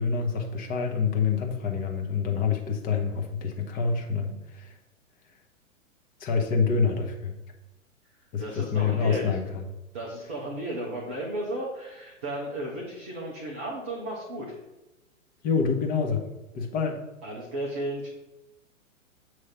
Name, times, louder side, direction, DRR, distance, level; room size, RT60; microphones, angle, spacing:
voice 1, 0.0-4.7 6.2-7.3 8.3-9.6 15.4-16.3 16.5-17.0, left 5 dB, 20° left, 2 dB, 1.0 m, -27 dB
voice 2, 8.4-9.3 9.9-14.6 17.2-18.1, right 1 dB, 10° right, -4 dB, 0.3 m, -34 dB
7.3 x 3.2 x 5.8 m, 1.0 s
figure-of-eight pair, 110°, 40 cm